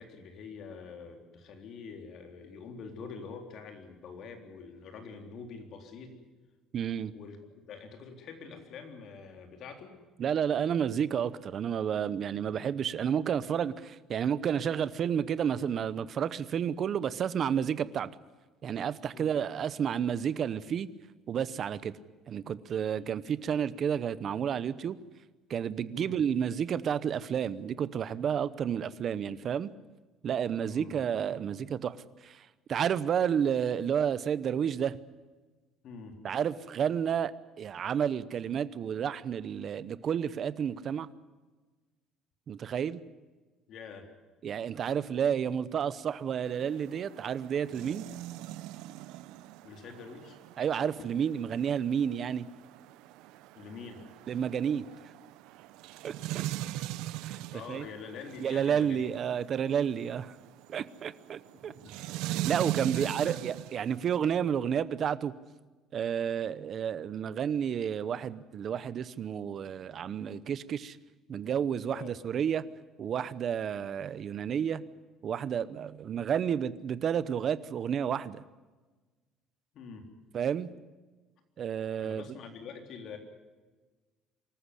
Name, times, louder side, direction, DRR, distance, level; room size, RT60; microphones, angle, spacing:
voice 1, 0.0-6.1 7.1-7.4 7.7-9.9 19.1-19.3 25.9-26.2 30.7-31.0 35.8-36.1 43.7-44.0 49.6-50.4 53.6-54.0 57.5-59.1 61.7-61.9 62.9-63.4 71.9-72.2 79.7-80.0 82.0-83.2, left 5 dB, 50° left, 5 dB, 3.7 m, -45 dB
voice 2, 6.7-7.1 10.2-18.1 18.6-20.9 21.3-21.9 22.3-25.0 25.5-29.7 30.2-32.0 32.2-35.0 36.2-41.1 42.5-43.0 44.4-48.1 50.6-52.5 54.3-54.8 56.0-56.4 57.2-57.4 57.7-57.8 58.4-60.4 60.7-61.7 62.2-65.3 65.9-71.0 71.3-72.6 73.0-74.8 75.2-78.4 80.3-80.7 81.6-82.2, right 8 dB, 35° right, 16 dB, 0.8 m, -31 dB
sound 1, 46.5-64.2, right 15 dB, 80° right, 0.7 m, -41 dB
25.0 x 14.0 x 9.9 m, 1.3 s
cardioid pair, 160°, 0 cm